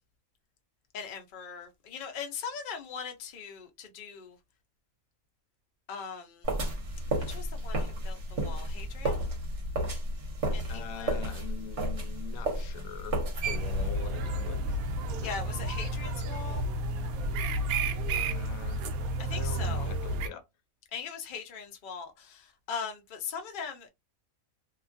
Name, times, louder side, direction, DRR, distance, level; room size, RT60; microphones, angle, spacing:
voice 1, 0.9-4.4 5.9-6.5 7.3-9.2 10.5-11.1 15.2-16.6 19.2-19.9 20.9-23.9, left 6 dB, 50° left, 0.7 m, -40 dB
sound 1, 6.4-13.9, right 1 dB, 55° right, 1.3 m, -32 dB
voice 2, 10.7-13.2 13.5-14.8 15.1-15.3 18.1-18.8 19.3-20.4, left 8 dB, 80° left, 1.0 m, -43 dB
sound 2, 13.4-20.3, right 1 dB, 90° right, 1.0 m, -31 dB
2.8 x 2.4 x 2.4 m
omnidirectional pair, 1.5 m